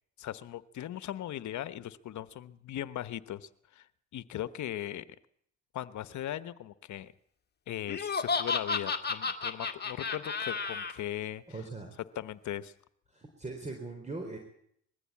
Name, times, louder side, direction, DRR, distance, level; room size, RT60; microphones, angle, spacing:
voice 1, 0.2-3.9 4.1-5.0 5.7-7.1 7.7-11.4 12.1-12.7, left 12 dB, 70° left, 14 dB, 1.1 m, -38 dB
Laughter, 7.9-10.9, left 5 dB, 35° left, 1.9 m, -32 dB
voice 2, 11.5-11.9 13.1-14.4, right 3 dB, 25° right, 4 dB, 3.8 m, -40 dB
21.0 x 15.0 x 8.5 m, 0.68 s
cardioid pair, 90°, 30 cm